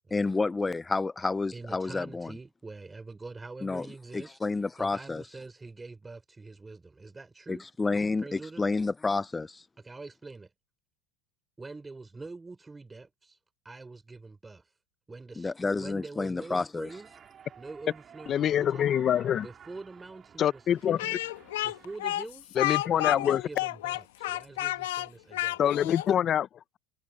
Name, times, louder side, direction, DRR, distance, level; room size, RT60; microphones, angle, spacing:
voice 1, 0.1-2.3 3.6-3.9 4.1-5.2 7.5-9.6 15.4-16.9, left 3 dB, 15° left, 0.4 m, -30 dB
voice 2, 1.5-4.4 4.8-7.9 8.2-8.6 9.8-10.5 11.6-13.4 13.6-14.7 15.1-17.2 17.6-18.9 19.4-21.2 21.6-22.6 22.9-25.6, right 3 dB, 15° right, 4.6 m, -45 dB
sound 1, 16.9-22.0, right 8 dB, 30° right, 3.1 m, -53 dB
voice 3, 18.3-19.5 20.4-21.0 22.6-23.4 25.6-26.5, left 10 dB, 35° left, 0.8 m, -25 dB
Speech, 21.0-26.1, left 16 dB, 85° left, 1.2 m, -31 dB
supercardioid pair, 115°, 0 cm